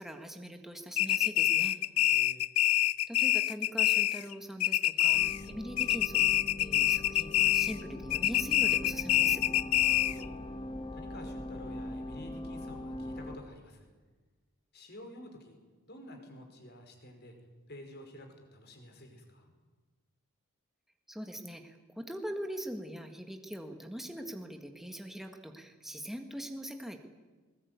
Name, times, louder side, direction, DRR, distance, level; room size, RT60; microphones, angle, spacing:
voice 1, 0.0-1.8 3.1-9.4 21.1-27.0, equal, ahead, 5 dB, 1.7 m, -42 dB
sound 1, 1.0-4.3 4.6-5.5 5.8-7.8 8.1-10.2, left 14 dB, 85° left, 0.7 m, -26 dB
voice 2, 2.0-2.5 9.8-10.3 10.9-13.9 14.7-15.6 15.9-17.4 17.7-19.5, left 1 dB, 50° left, 4 dB, 5.2 m, -50 dB
sound 2, 5.1-13.4, left 1 dB, 25° left, 2.5 m, -41 dB
21.5 x 20.0 x 9.6 m, 1.3 s
head